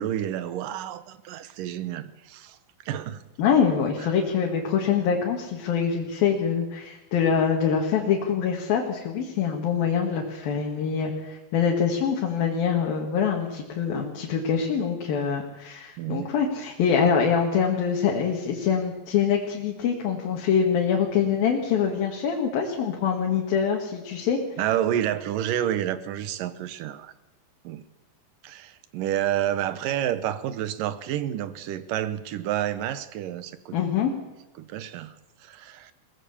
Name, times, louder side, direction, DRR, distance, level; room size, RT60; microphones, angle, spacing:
voice 1, 0.0-2.6 2.9-3.2 16.0-16.3 24.6-27.1 27.6-27.8 28.4-33.8 34.6-35.1 35.4-35.9, right 11 dB, 75° right, 14 dB, 2.5 m, -29 dB
voice 2, 3.4-24.4 33.7-34.1, left 7 dB, 85° left, 0 dB, 3.7 m, -24 dB
22.0 x 18.0 x 7.1 m, 1.0 s
omnidirectional pair, 4.1 m